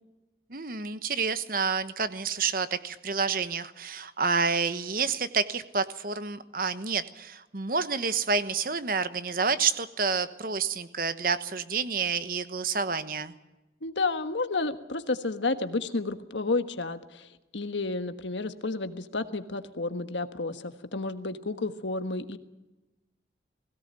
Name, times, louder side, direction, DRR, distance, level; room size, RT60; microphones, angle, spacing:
voice 1, 0.5-13.3, right 5 dB, 50° right, 12 dB, 1.1 m, -29 dB
voice 2, 13.8-17.3 17.5-22.4, left 3 dB, 85° left, 9 dB, 1.4 m, -31 dB
20.5 x 17.0 x 9.0 m, 1.0 s
head